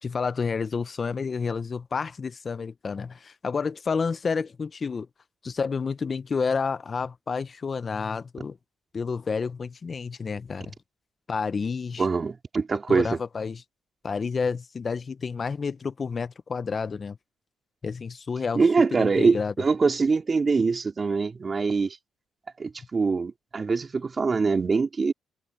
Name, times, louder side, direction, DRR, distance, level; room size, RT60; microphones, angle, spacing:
voice 1, 0.0-5.1 5.4-8.6 8.9-10.7 11.3-12.1 12.9-13.6 14.0-17.2 17.8-18.6 19.0-19.5, left 5 dB, 40° left, 0.6 m, -30 dB
voice 2, 12.0-13.2 18.5-22.0 22.6-25.1, right 4 dB, 35° right, 2.8 m, -23 dB
cardioid pair, 90°, 0 cm